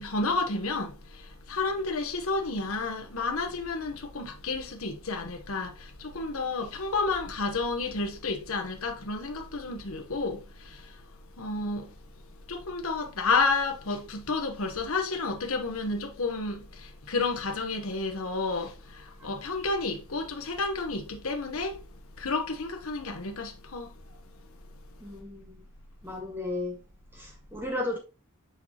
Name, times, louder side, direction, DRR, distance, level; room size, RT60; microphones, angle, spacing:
voice 1, 0.0-21.8 22.2-24.4, left 3 dB, 70° left, 1.1 m, -31 dB
voice 2, 25.0-25.6 26.0-26.8 27.1-28.0, left 2 dB, 10° right, 1.6 m, -34 dB
6.2 x 5.8 x 2.9 m
head